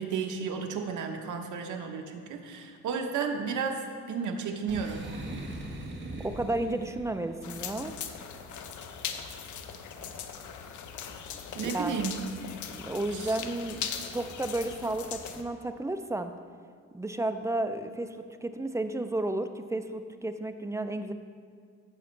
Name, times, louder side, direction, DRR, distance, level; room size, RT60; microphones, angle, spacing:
voice 1, 0.0-3.8 4.1-5.0 11.5-12.1 13.1-13.3, right 6 dB, 70° right, 4 dB, 1.1 m, -32 dB
Boom, 4.7-7.4, right 2 dB, 35° right, 1.5 m, -40 dB
voice 2, 6.2-7.9 11.6-11.9 12.7-13.8 14.1-16.3 16.9-21.1, right 2 dB, 10° right, 8 dB, 0.3 m, -32 dB
sound 1, 7.4-15.4, left 7 dB, 70° left, 0.8 m, -40 dB
15.0 x 6.9 x 3.2 m, 2.1 s
cardioid pair, 130°, 31 cm